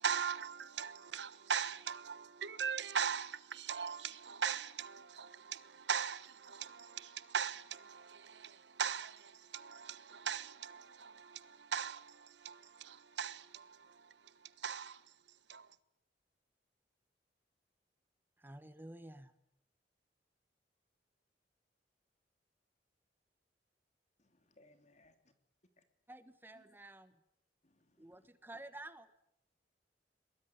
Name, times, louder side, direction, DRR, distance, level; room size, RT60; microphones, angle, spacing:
voice 1, 0.0-13.9 14.6-15.0 15.5-15.7, right 7 dB, 80° right, 1.2 m, -40 dB
voice 2, 18.4-19.3 26.1-27.1 28.0-29.1, right 1 dB, 10° right, 1.2 m, -51 dB
voice 3, 24.2-25.1 25.8-25.9 26.5-26.6 27.6-28.3, left 2 dB, 40° left, 3.0 m, -68 dB
23.0 x 22.0 x 9.8 m
head